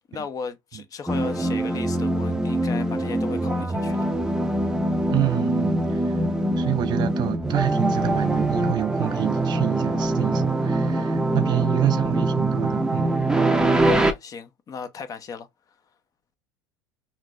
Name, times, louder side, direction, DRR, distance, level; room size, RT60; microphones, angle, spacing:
voice 1, 0.1-4.0 11.3-11.5 13.7-15.5, left 5 dB, 35° left, 0.8 m, -36 dB
sound 1, 1.1-14.1, right 1 dB, 5° right, 0.7 m, -23 dB
voice 2, 5.1-6.1 6.6-13.1, right 14 dB, 40° right, 0.5 m, -27 dB
4.4 x 2.7 x 2.6 m
hypercardioid pair, 85°, 11 cm